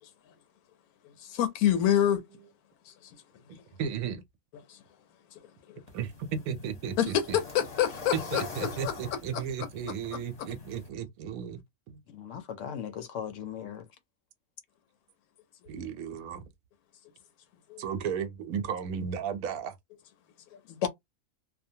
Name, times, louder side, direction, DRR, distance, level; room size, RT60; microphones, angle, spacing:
voice 1, 1.2-2.2 2.9-3.1 4.7-4.8 5.7-5.8 7.0-8.9 9.3-9.4 17.7-17.8, left 10 dB, 85° left, 1.1 m, -27 dB
voice 2, 3.8-4.2 5.9-6.1 6.5-7.4 8.3-11.6 11.9-12.0 15.7-16.4 17.8-19.7, right 7 dB, 75° right, 1.0 m, -34 dB
sound 1, 5.9-10.9, left 4 dB, 35° left, 0.8 m, -45 dB
voice 3, 12.1-13.8 20.7-20.9, left 8 dB, 70° left, 0.8 m, -36 dB
2.7 x 2.2 x 2.6 m
omnidirectional pair, 1.5 m